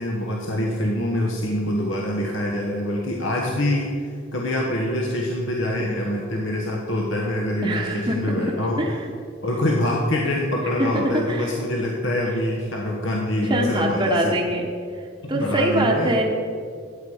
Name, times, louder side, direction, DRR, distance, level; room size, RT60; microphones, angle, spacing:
voice 1, 0.0-8.8 9.4-14.3 15.2-16.1, left 1 dB, 75° left, -1 dB, 1.3 m, -25 dB
voice 2, 7.6-8.5 8.8-9.0 10.8-10.9 11.1-11.5 13.5-14.6 15.3-16.2, right 1 dB, 25° right, -2 dB, 0.9 m, -23 dB
13.0 x 8.8 x 4.9 m, 2.3 s
head